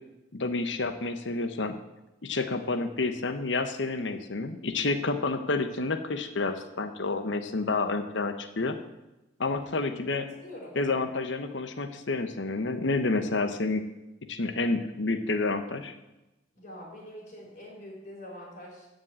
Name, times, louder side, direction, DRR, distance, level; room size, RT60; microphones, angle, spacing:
voice 1, 0.3-1.8 2.2-8.8 9.4-10.2 10.8-13.8 14.3-15.9, left 3 dB, 70° left, 7 dB, 1.0 m, -29 dB
voice 2, 10.2-11.2 16.5-18.9, left 1 dB, 40° left, -3 dB, 5.2 m, -45 dB
15.0 x 5.3 x 8.3 m, 0.99 s
head